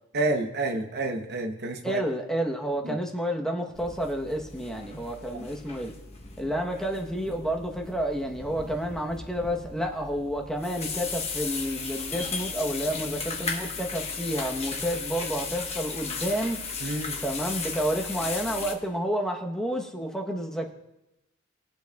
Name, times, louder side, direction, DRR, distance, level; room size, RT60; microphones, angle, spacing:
voice 1, 0.1-2.0 2.8-3.0 16.8-17.2, right 2 dB, 50° right, 6 dB, 0.8 m, -29 dB
voice 2, 1.8-5.9 6.4-16.6 17.2-20.7, equal, 5° left, 1 dB, 0.9 m, -30 dB
sound 1, 3.7-18.7, left 4 dB, 30° left, 1.1 m, -36 dB
21.0 x 7.7 x 2.3 m, 0.92 s
head